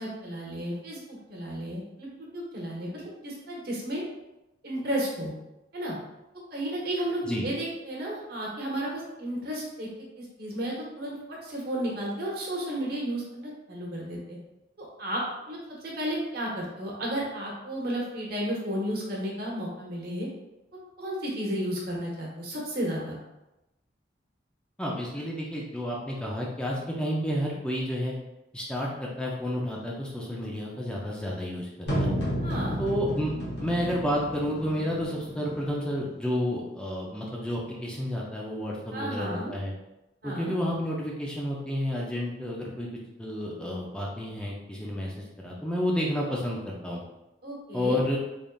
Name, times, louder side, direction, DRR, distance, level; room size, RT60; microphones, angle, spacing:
voice 1, 0.0-2.1 2.3-4.0 4.6-5.3 5.7-6.0 6.5-9.9 10.2-14.4 14.8-20.3 21.0-23.2 32.4-32.8 38.9-39.5 40.2-40.5 47.4-48.0, right 1 dB, 55° right, -3 dB, 1.1 m, -33 dB
voice 2, 24.8-28.1 28.5-32.1 32.8-33.3 33.6-39.7 40.2-42.9 43.2-47.0 47.7-48.2, equal, 5° left, -4 dB, 0.4 m, -30 dB
sound 1, 31.9-35.9, equal, 70° left, 1.0 m, -32 dB
3.7 x 3.5 x 2.3 m, 0.96 s
head